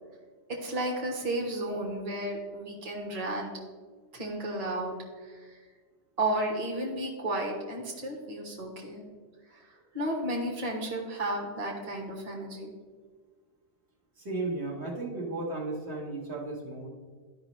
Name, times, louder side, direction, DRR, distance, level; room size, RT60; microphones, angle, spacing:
voice 1, 0.5-3.5 4.1-5.6 6.2-9.0 9.5-12.7, right 1 dB, 35° right, 0 dB, 1.2 m, -33 dB
voice 2, 14.2-16.9, right 2 dB, 70° right, -3 dB, 1.7 m, -34 dB
13.0 x 5.3 x 3.0 m, 1.5 s
omnidirectional pair, 1.1 m